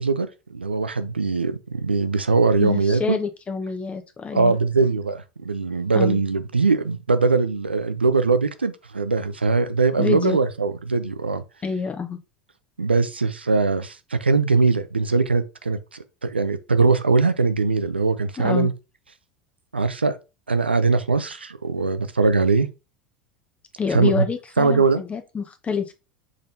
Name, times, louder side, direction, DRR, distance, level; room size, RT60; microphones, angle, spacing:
voice 1, 0.0-3.2 4.3-11.4 12.8-18.7 19.7-20.2 20.5-22.7 23.9-24.3 24.6-25.0, right 4 dB, 90° right, 0.5 m, -21 dB
voice 2, 2.6-4.5 5.9-6.2 10.0-10.4 11.6-12.2 18.4-18.7 23.8-25.9, left 5 dB, 25° left, 0.7 m, -27 dB
5.0 x 3.9 x 2.7 m
figure-of-eight pair, 80°, 6 cm